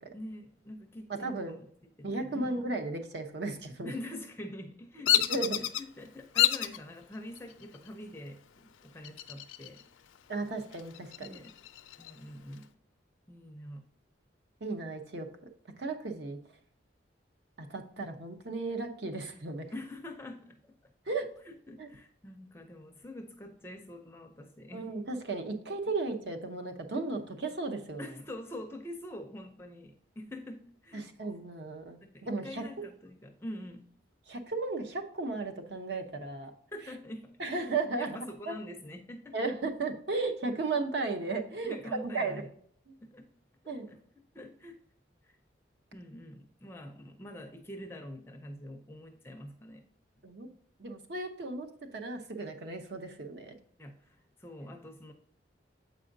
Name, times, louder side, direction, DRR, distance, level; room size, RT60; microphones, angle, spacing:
voice 1, 0.1-1.7 2.0-2.6 3.8-9.9 11.2-11.5 12.0-12.7 13.3-13.8 19.7-20.9 21.4-24.9 26.9-27.2 28.0-31.1 32.2-33.9 36.7-39.4 41.6-42.5 43.0-43.3 43.6-44.0 44.3-44.8 45.2-45.4 45.9-49.8 53.8-55.1, left 1 dB, 15° left, 4 dB, 0.4 m, -45 dB
voice 2, 1.2-1.5 2.0-3.9 5.3-5.6 10.3-11.4 14.6-15.3 15.8-16.4 17.6-19.7 21.1-21.3 21.8-21.9 24.7-28.1 30.9-32.6 34.3-36.5 37.4-38.6 39.3-42.4 42.9-43.0 43.7-43.9 50.2-50.5 50.8-53.6, right 3 dB, 60° right, 5 dB, 0.8 m, -35 dB
Bird vocalization bird call bird song, 5.0-5.8 6.3-6.8 7.4-7.9 9.0-9.8 10.1-10.2 10.7-12.1, left 12 dB, 85° left, 0.4 m, -28 dB
7.7 x 4.9 x 2.6 m, 0.62 s
head